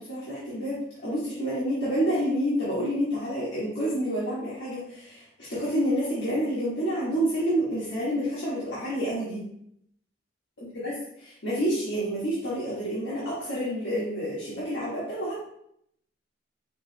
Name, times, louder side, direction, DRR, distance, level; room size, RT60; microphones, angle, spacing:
voice 1, 0.0-9.4 10.6-10.9 11.2-15.4, equal, 90° left, -9 dB, 1.4 m, -28 dB
5.2 x 3.0 x 2.8 m, 0.73 s
head